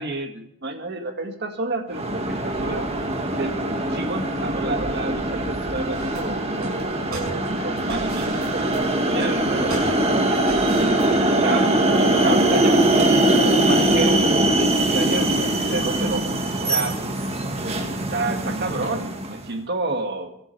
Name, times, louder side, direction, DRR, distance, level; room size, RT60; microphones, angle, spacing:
voice 1, 0.0-2.9 3.4-8.7 9.1-10.4 10.8-10.9 11.4-16.2 16.6-17.0 17.6-20.3, right 2 dB, 50° right, 5 dB, 2.0 m, -30 dB
sound 1, 1.9-19.4, right 1 dB, 30° right, 1.8 m, -22 dB
sound 2, 5.9-11.2, right 2 dB, 85° right, 6.2 m, -38 dB
24.5 x 11.5 x 3.4 m, 0.76 s
head